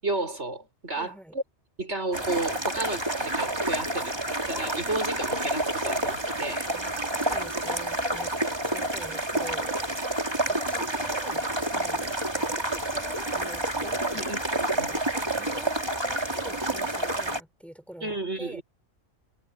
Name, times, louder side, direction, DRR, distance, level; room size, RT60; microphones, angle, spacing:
voice 1, 0.0-1.1 1.8-6.7 14.1-14.4 14.8-14.9 18.0-18.6, right 2 dB, 65° right, 6.6 m, -32 dB
voice 2, 0.9-1.4 6.7-8.3 8.6-14.3 14.7-15.1 15.4-18.6, right 1 dB, ahead, 5.3 m, -45 dB
sound 1, 2.1-17.4, right 1 dB, 20° right, 2.5 m, -29 dB
omnidirectional pair, 1.2 m